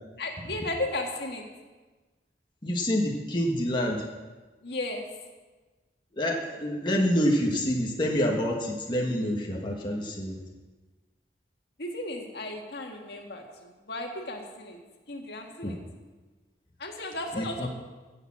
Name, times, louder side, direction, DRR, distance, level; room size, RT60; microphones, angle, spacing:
voice 1, 0.2-1.4 4.6-5.1 11.8-14.8 15.1-15.8 16.8-17.7, left 2 dB, 65° left, 2 dB, 1.9 m, -35 dB
voice 2, 2.6-4.1 6.1-10.4 15.6-15.8 17.3-17.7, equal, 25° left, -1 dB, 1.5 m, -27 dB
16.0 x 6.9 x 7.4 m, 1.3 s
head